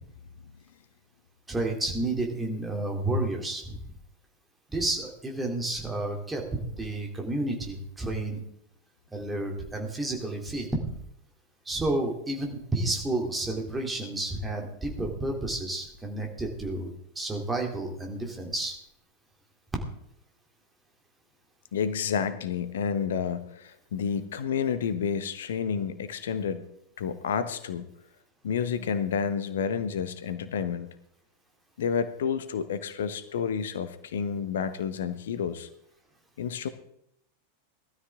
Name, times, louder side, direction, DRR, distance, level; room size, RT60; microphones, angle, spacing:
voice 1, 1.5-3.9 4.7-8.4 9.1-10.8 11.6-18.8, right 2 dB, 10° right, 1 dB, 2.9 m, -31 dB
voice 2, 21.7-26.6 27.0-27.9 28.4-30.9 31.8-35.7 36.4-36.7, left 7 dB, 60° left, 13 dB, 1.0 m, -30 dB
18.5 x 13.0 x 3.6 m, 0.76 s
figure-of-eight pair, 90°, 0 cm